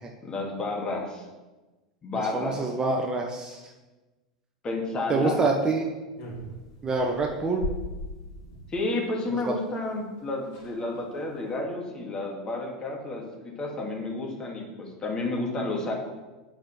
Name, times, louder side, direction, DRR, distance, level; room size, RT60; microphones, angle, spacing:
voice 1, 0.2-1.2 2.0-2.6 4.6-5.4 8.7-15.9, left 2 dB, 25° left, -1 dB, 2.4 m, -31 dB
voice 2, 2.3-3.6 5.1-5.9 6.8-7.6, right 3 dB, 20° right, 1 dB, 1.1 m, -26 dB
sound 1, 6.2-8.7 9.9-10.0 10.2-10.3 10.4-10.8 11.3-11.5, equal, 50° left, 3.3 m, -38 dB
7.1 x 5.7 x 7.4 m, 1.2 s
figure-of-eight pair, 85°, 3 cm